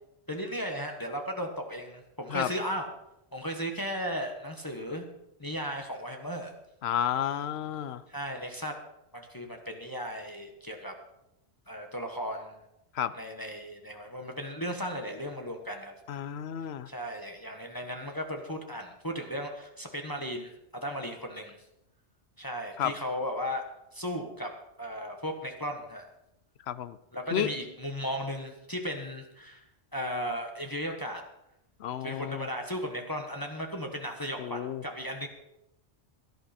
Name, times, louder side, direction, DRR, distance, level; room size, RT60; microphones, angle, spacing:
voice 1, 0.3-2.9 3.3-5.1 5.4-6.5 8.1-8.7 9.1-10.9 11.7-12.6 13.1-15.9 16.9-20.5 20.8-21.6 22.4-23.6 23.9-24.5 24.8-26.1 27.1-29.6 29.9-31.2 32.0-35.3, equal, 20° left, 3 dB, 1.3 m, -36 dB
voice 2, 6.8-8.0 12.9-13.1 16.1-16.9 22.8-22.9 26.7-27.0 27.3-27.5 31.8-32.5 34.4-34.8, left 10 dB, 65° left, 14 dB, 0.9 m, -31 dB
17.0 x 11.0 x 4.3 m, 0.86 s
omnidirectional pair, 1.2 m